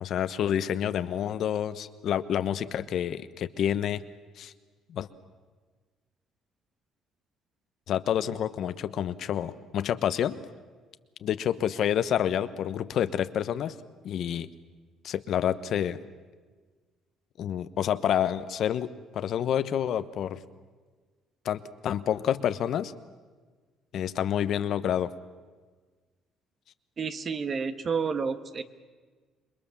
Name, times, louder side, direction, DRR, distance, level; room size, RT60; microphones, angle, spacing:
voice 1, 0.0-4.0 4.4-4.5 4.9-5.1 7.9-10.4 11.2-13.8 14.0-14.5 15.0-16.0 17.4-20.4 21.4-22.9 23.9-25.1, left 10 dB, 60° left, 12 dB, 1.1 m, -28 dB
voice 2, 27.0-28.6, right 5 dB, 40° right, 10 dB, 1.4 m, -30 dB
27.5 x 22.0 x 7.3 m, 1.4 s
cardioid pair, 105°, 0 cm